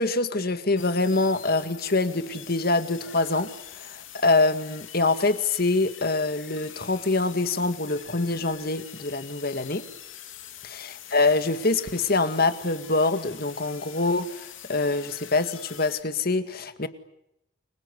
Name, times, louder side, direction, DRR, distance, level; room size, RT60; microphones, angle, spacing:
voice 1, 0.0-9.8 10.6-16.9, left 3 dB, 50° left, 10 dB, 1.9 m, -25 dB
sound 1, 0.8-16.0, left 10 dB, 90° left, 3.3 m, -44 dB
29.5 x 24.0 x 8.3 m, 0.82 s
head